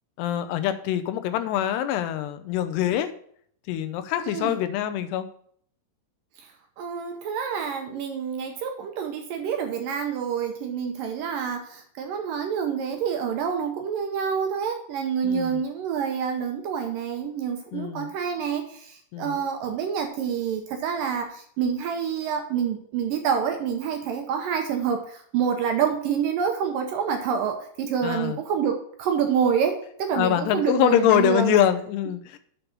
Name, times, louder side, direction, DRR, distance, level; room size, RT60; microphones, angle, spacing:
voice 1, 0.2-3.1 3.7-5.3 15.2-15.6 17.7-18.1 19.1-19.4 28.0-28.4 30.1-32.4, left 11 dB, 90° left, 9 dB, 2.9 m, -24 dB
voice 2, 4.2-4.6 6.4-6.5 6.8-31.5, right 7 dB, 70° right, 4 dB, 2.2 m, -27 dB
7.3 x 5.3 x 7.0 m, 0.62 s
omnidirectional pair, 4.7 m